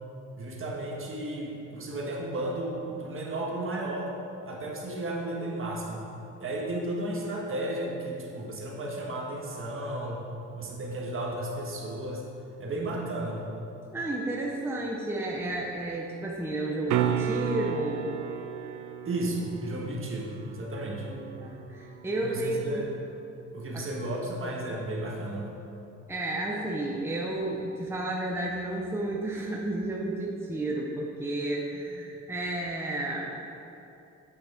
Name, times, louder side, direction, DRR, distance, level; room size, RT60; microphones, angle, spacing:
voice 1, 0.4-4.1 4.4-6.0 6.4-10.2 10.5-12.2 12.6-13.4 19.0-21.2 22.2-22.9 23.5-25.5, right 1 dB, 45° right, -2 dB, 1.5 m, -33 dB
voice 2, 13.9-18.1 20.8-22.9 23.7-23.9 26.1-33.6, right 1 dB, 10° right, -2 dB, 0.8 m, -32 dB
sound 1, 16.9-22.9 27.6-27.7, right 9 dB, 80° right, 0.5 m, -34 dB
8.2 x 6.2 x 3.5 m, 2.9 s
cardioid pair, 90°, 30 cm